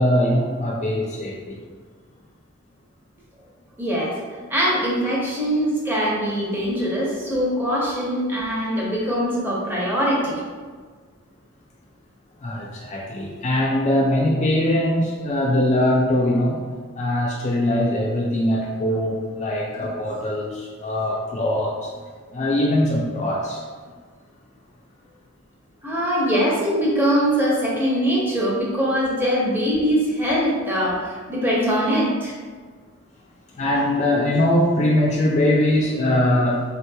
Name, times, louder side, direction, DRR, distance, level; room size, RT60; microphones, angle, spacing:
voice 1, 0.0-1.6 12.4-16.6 17.0-21.9 22.3-23.6 33.5-36.6, left 1 dB, 30° left, -3 dB, 0.3 m, -21 dB
voice 2, 3.8-4.2 4.5-10.4 25.8-32.3, equal, 10° right, -5 dB, 0.6 m, -22 dB
3.6 x 2.9 x 2.2 m, 1.5 s
head